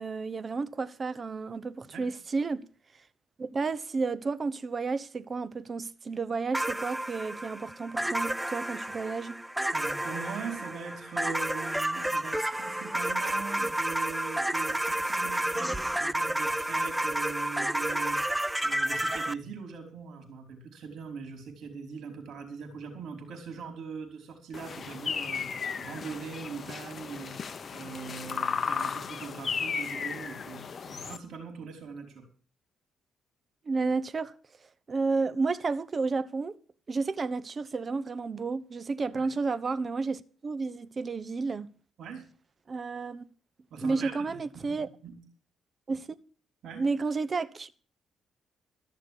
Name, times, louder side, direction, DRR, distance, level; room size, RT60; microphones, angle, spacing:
voice 1, 0.0-2.6 3.4-9.4 33.6-34.3 34.9-36.6 36.9-41.7 42.7-43.2 43.8-44.9 45.9-46.1 46.8-47.7, right 4 dB, 35° right, 1.0 m, -31 dB
sound 1, 6.5-19.3, right 1 dB, 5° right, 0.5 m, -31 dB
voice 2, 9.7-32.3 39.1-39.3 42.0-42.2 43.7-45.2 46.6-46.9, right 5 dB, 70° right, 5.0 m, -41 dB
sound 2, 24.5-31.2, left 6 dB, 45° left, 1.0 m, -35 dB
14.5 x 6.6 x 8.7 m
cardioid pair, 90°, 0 cm